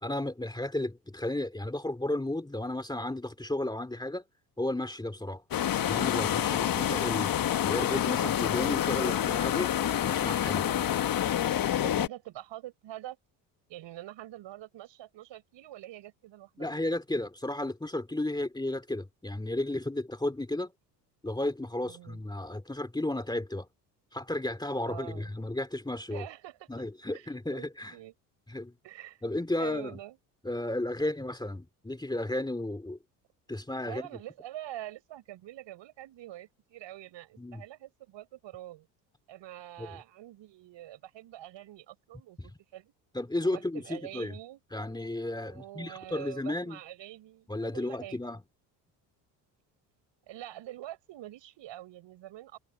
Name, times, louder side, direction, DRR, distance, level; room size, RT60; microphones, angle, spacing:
voice 1, 0.0-4.2 4.6-5.4 5.9-7.3 7.6-9.7 10.0-10.7 16.6-20.7 21.2-23.7 24.1-26.2 26.7-27.9 28.5-28.7 29.2-30.0 30.4-33.0 33.5-34.0 37.4-37.6 39.8-39.9 42.4-42.5 43.1-44.3 44.7-46.8 47.5-48.4, left 1 dB, 10° left, 2.7 m, -33 dB
sound 1, 5.5-12.1, left 11 dB, 40° left, 1.5 m, -28 dB
voice 2, 10.6-11.0 11.8-13.2 13.7-16.7 21.8-22.2 24.8-25.3 26.1-26.7 27.1-28.1 28.8-29.2 29.6-30.2 33.8-38.9 39.3-42.9 43.4-44.6 45.4-48.2 50.3-52.6, right 14 dB, 60° right, 7.4 m, -45 dB
hypercardioid pair, 65°, 50 cm